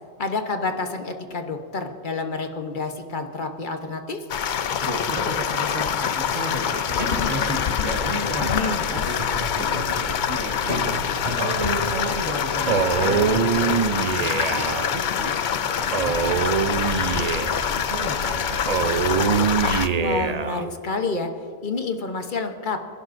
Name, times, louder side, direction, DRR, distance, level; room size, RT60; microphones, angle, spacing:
voice 1, 0.2-4.2 8.4-8.9 20.0-21.3 21.6-22.8, left 3 dB, 45° left, 5 dB, 1.0 m, -28 dB
sound 1, 4.3-19.9, left 8 dB, 60° left, 0.5 m, -25 dB
voice 2, 4.8-10.9 11.3-15.4 15.8-17.3 17.7-19.2, right 1 dB, 70° right, -3 dB, 1.9 m, -33 dB
sound 2, 7.0-7.5 9.0-9.9 10.7-11.0 11.3-12.0 12.7-13.5, equal, 30° right, 2.7 m, -31 dB
Male speech man speaking, 12.7-14.9 15.9-17.7 18.7-20.7, right 6 dB, 55° right, 0.4 m, -23 dB
28.0 x 11.5 x 2.6 m, 2.4 s
omnidirectional pair, 1.3 m